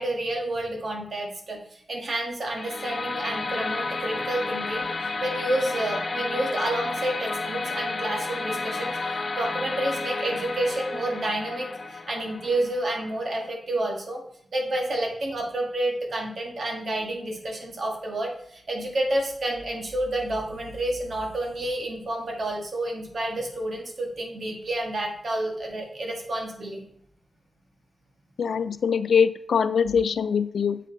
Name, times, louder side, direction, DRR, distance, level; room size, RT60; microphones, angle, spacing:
voice 1, 0.0-4.9 5.2-14.2 14.5-26.8, right 1 dB, 55° right, 1 dB, 1.5 m, -29 dB
sound 1, 2.5-13.5, left 3 dB, 40° left, 0.8 m, -32 dB
voice 2, 28.4-30.8, left 6 dB, 85° left, 12 dB, 0.3 m, -23 dB
7.5 x 5.0 x 3.9 m, 0.67 s
wide cardioid pair, 105°, 0 cm